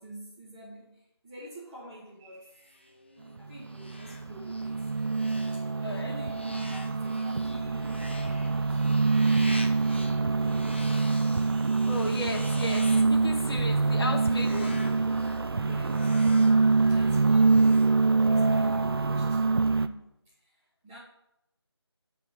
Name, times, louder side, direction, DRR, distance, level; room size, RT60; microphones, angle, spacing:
voice 1, 0.0-2.6 3.4-4.7 5.5-5.6 6.0-8.8 9.8-10.8 15.6-19.4 19.7-20.1 20.4-20.5 20.8-21.0, right 1 dB, 10° right, 0.8 m, -46 dB
sound 1, 2.5-18.5, left 1 dB, 25° left, 0.3 m, -47 dB
sound 2, 3.4-19.9, right 3 dB, 60° right, 0.4 m, -25 dB
voice 2, 5.8-6.2 7.2-7.3 11.9-14.9, left 2 dB, 60° left, 1.0 m, -35 dB
9.4 x 3.4 x 4.0 m
figure-of-eight pair, 170°, 14 cm